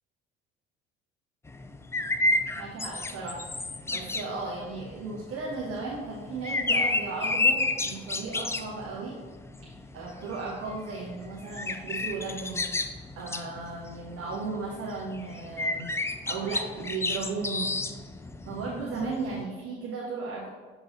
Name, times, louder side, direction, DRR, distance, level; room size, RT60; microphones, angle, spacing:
sound 1, 1.5-19.4, left 2 dB, 10° left, 0.3 m, -32 dB
voice 1, 2.5-3.4 3.9-9.1 9.9-12.7 13.1-15.9 16.3-17.7 18.5-20.5, right 3 dB, 50° right, -5 dB, 1.4 m, -35 dB
7.1 x 3.8 x 4.1 m, 1.4 s
figure-of-eight pair, 55°, 29 cm